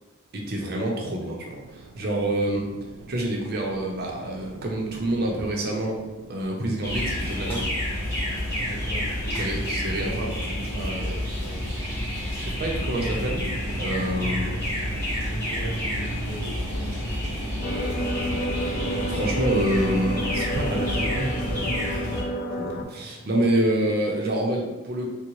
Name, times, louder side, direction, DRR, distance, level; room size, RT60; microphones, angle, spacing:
voice 1, 0.3-2.7 3.1-6.0 6.3-7.7 9.4-10.4 10.7-11.1 12.4-13.4 13.8-14.5 19.1-21.8 22.6-25.1, right 1 dB, 45° right, 0 dB, 0.6 m, -27 dB
sound 1, 1.5-20.7, right 3 dB, 90° right, 0.3 m, -42 dB
sound 2, 6.8-22.2, equal, 10° left, 0.8 m, -29 dB
voice 2, 8.6-12.0 14.1-18.7 22.9-23.7, equal, 75° left, -1 dB, 0.7 m, -40 dB
sound 3, 17.6-22.8, equal, 45° left, 0.3 m, -30 dB
3.7 x 2.1 x 3.0 m, 1.1 s
head